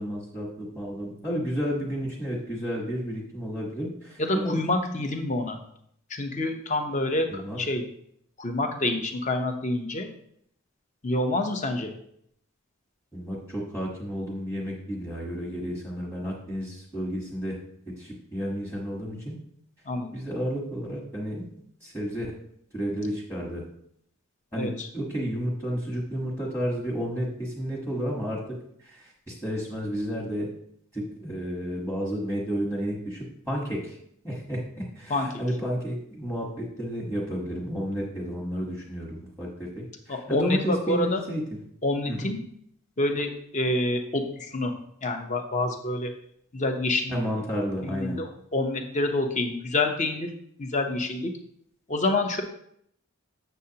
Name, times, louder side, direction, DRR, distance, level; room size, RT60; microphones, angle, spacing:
voice 1, 0.0-5.0 7.3-7.6 13.1-17.6 18.0-19.3 20.1-21.5 21.8-22.3 22.7-23.6 24.5-28.4 28.8-30.5 30.9-34.0 34.2-41.6 42.1-42.3 47.1-48.2, equal, 10° left, -5 dB, 1.2 m, -31 dB
voice 2, 4.2-5.6 6.1-7.8 8.4-10.1 11.0-12.0 19.9-20.1 24.6-24.9 35.1-35.3 40.1-41.2 41.8-42.4 43.0-44.7 45.0-46.1 46.5-47.2 47.8-50.3 50.6-51.3 51.9-52.4, left 2 dB, 35° left, 5 dB, 0.7 m, -27 dB
8.0 x 6.6 x 2.8 m, 0.70 s
head